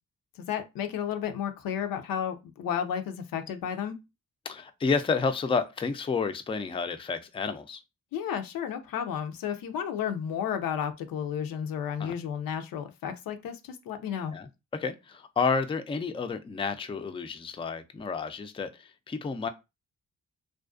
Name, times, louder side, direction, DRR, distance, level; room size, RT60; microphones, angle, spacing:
voice 1, 0.5-4.0 8.1-14.3, left 8 dB, 80° left, 0.5 m, -32 dB
voice 2, 4.5-7.8 12.0-12.1 14.3-19.5, left 5 dB, 15° left, 0.3 m, -30 dB
2.4 x 2.2 x 2.4 m
supercardioid pair, 45°, 34 cm